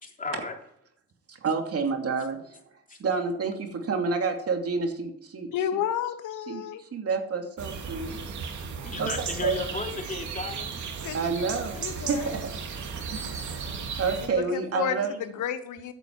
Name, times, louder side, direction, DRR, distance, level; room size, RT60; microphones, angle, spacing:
voice 1, 0.0-0.5 2.9-3.0 8.8-10.7 11.7-11.8, left 3 dB, 25° left, 2 dB, 3.2 m, -35 dB
voice 2, 1.3-2.6 3.0-5.5 6.5-6.7 6.9-8.2 9.0-9.5 11.1-12.5 13.1-15.1, right 4 dB, 50° right, 4 dB, 2.7 m, -29 dB
voice 3, 5.5-6.8 11.0-11.4 11.8-12.3 14.2-15.9, left 9 dB, 85° left, 10 dB, 1.2 m, -31 dB
sound 1, 7.6-14.3, right 6 dB, 70° right, 2.8 m, -35 dB
14.0 x 9.1 x 4.7 m, 0.68 s
cardioid pair, 90°, 30 cm